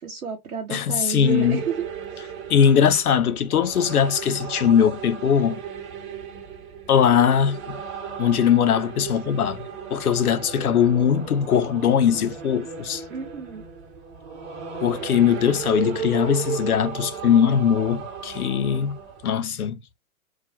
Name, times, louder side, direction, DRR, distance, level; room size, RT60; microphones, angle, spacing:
voice 1, 0.0-1.9 2.1-2.2 13.1-13.6, right 6 dB, 85° right, 0.8 m, -32 dB
voice 2, 0.7-1.6 2.5-5.6 6.9-7.8 8.2-13.0 14.8-19.0 19.2-19.8, left 8 dB, 85° left, 0.6 m, -20 dB
sound 1, 1.2-19.4, right 7 dB, 35° right, 0.9 m, -35 dB
2.3 x 2.0 x 2.7 m
figure-of-eight pair, 110°, 43 cm